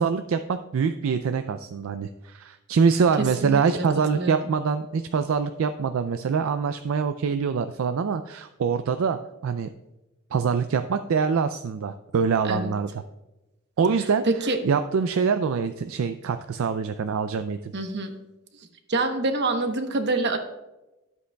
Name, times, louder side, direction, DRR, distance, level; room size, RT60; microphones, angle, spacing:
voice 1, 0.0-9.7 10.3-12.9 13.8-17.7, right 5 dB, 70° right, 9 dB, 0.4 m, -24 dB
voice 2, 3.2-3.9 4.1-4.4 12.4-12.7 14.2-14.6 17.7-18.1 18.9-20.4, right 2 dB, 55° right, 6 dB, 0.9 m, -26 dB
12.5 x 8.1 x 2.3 m, 1.0 s
head